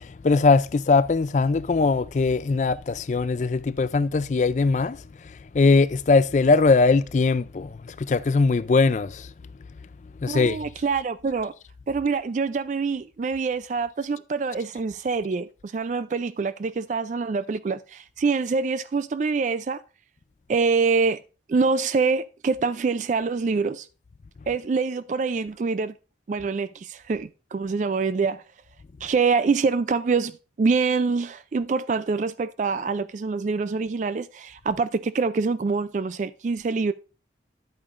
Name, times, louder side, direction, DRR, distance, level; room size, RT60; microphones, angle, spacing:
voice 1, 0.0-5.0 5.5-9.3 10.2-10.6, left 4 dB, 40° left, 0.3 m, -21 dB
voice 2, 10.3-11.5 11.9-19.8 20.5-21.2 21.5-23.9 24.5-25.9 26.3-28.4 29.0-36.9, right 4 dB, 40° right, 0.3 m, -25 dB
10.5 x 8.6 x 2.5 m
head